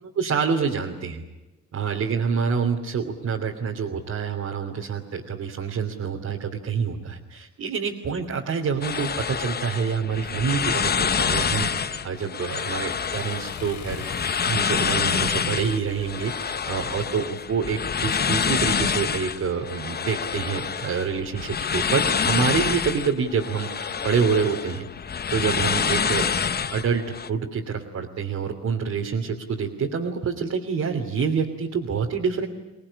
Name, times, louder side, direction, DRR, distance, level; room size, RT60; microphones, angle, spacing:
voice 1, 0.0-1.2 1.7-14.2 14.4-24.9 25.3-26.3 26.7-32.5, right 6 dB, 55° right, 0 dB, 3.1 m, -27 dB
sound 1, 8.8-27.3, left 6 dB, 30° left, 0.8 m, -27 dB
Accelerating revving vroom, 11.9-17.2, left 7 dB, 65° left, 2.8 m, -43 dB
25.5 x 19.0 x 10.0 m, 1.1 s
cardioid pair, 90°, 30 cm